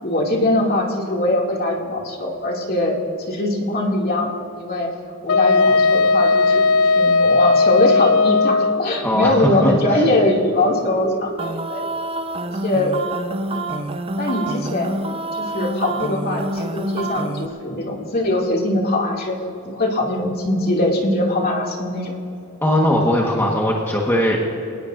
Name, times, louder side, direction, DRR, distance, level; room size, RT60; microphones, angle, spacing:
voice 1, 0.0-3.0 3.3-4.9 5.2-11.3 11.7-11.8 12.4-12.9 13.5-13.8 14.2-15.0 15.3-19.4 19.6-22.1, left 1 dB, 45° left, -1 dB, 2.6 m, -21 dB
Wind instrument woodwind instrument, 5.3-8.9, left 4 dB, 75° left, 0.3 m, -16 dB
voice 2, 9.0-10.1 22.6-24.4, left 1 dB, 10° left, -2 dB, 1.4 m, -19 dB
sound 1, 11.4-17.5, right 2 dB, 25° right, 0.5 m, -27 dB
28.0 x 18.5 x 2.6 m, 2.6 s
head